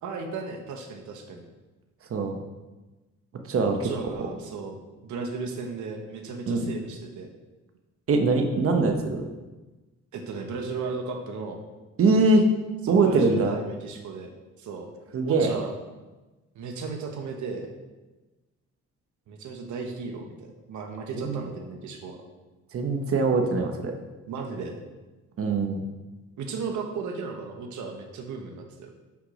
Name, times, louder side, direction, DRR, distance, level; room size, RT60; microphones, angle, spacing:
voice 1, 0.0-1.4 3.8-7.3 10.1-11.6 12.8-14.3 14.6-14.9 15.2-15.7 16.5-17.7 19.3-22.2 24.3-24.8 26.4-28.9, right 4 dB, 75° right, 3 dB, 1.2 m, -35 dB
voice 2, 3.5-3.9 4.2-4.3 6.5-6.7 8.1-9.2 12.0-12.5 12.9-13.6 15.1-15.5 21.2-21.4 22.7-23.9 25.4-25.8, right 3 dB, 50° right, 4 dB, 1.0 m, -22 dB
6.0 x 5.9 x 5.0 m, 1.2 s
cardioid pair, 90°, 30 cm